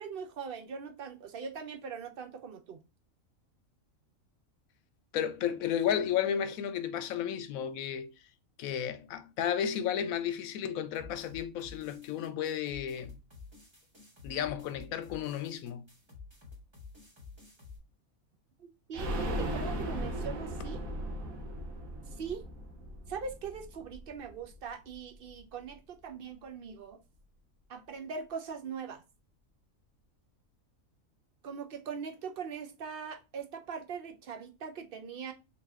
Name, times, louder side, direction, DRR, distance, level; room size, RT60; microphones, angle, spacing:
voice 1, 0.0-2.8 18.6-20.8 22.2-22.5 23.1-27.0 27.7-29.0 31.4-35.3, right 6 dB, 60° right, 0.6 m, -41 dB
voice 2, 5.1-8.1 8.6-13.2 14.2-15.9, left 9 dB, 90° left, 1.0 m, -33 dB
sound 1, 10.9-17.8, left 4 dB, 20° right, 1.3 m, -51 dB
sound 2, 18.9-24.6 24.9-25.0 25.3-25.4, equal, 85° right, 1.3 m, -37 dB
4.0 x 2.8 x 3.4 m
omnidirectional pair, 1.4 m